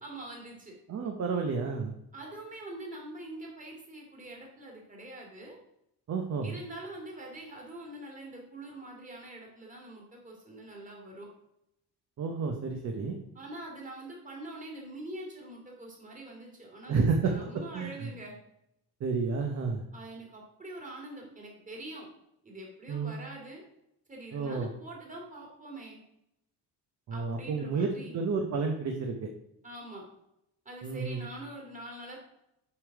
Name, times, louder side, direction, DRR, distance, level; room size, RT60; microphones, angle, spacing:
voice 1, 0.0-0.8 2.1-5.6 6.4-11.3 13.3-18.4 19.9-22.1 22.4-23.6 24.1-26.0 27.1-28.2 29.6-30.0 30.7-32.2, right 1 dB, 20° right, -1 dB, 2.3 m, -44 dB
voice 2, 0.9-1.9 6.1-6.6 12.2-13.2 16.9-17.3 17.7-18.1 19.0-19.8 22.9-23.2 24.3-24.7 27.1-29.3 30.8-31.3, right 4 dB, 40° right, 2 dB, 0.9 m, -30 dB
6.9 x 5.3 x 4.7 m, 0.80 s
cardioid pair, 135°, 39 cm